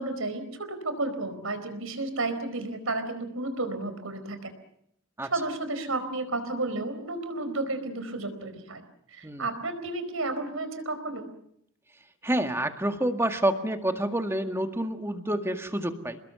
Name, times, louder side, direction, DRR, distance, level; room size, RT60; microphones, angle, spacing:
voice 1, 0.0-4.5 5.3-8.8 9.1-11.3, right 2 dB, 75° right, 9 dB, 4.6 m, -32 dB
voice 2, 12.2-16.2, right 1 dB, 10° right, 6 dB, 1.9 m, -28 dB
29.0 x 21.0 x 6.9 m, 0.72 s
head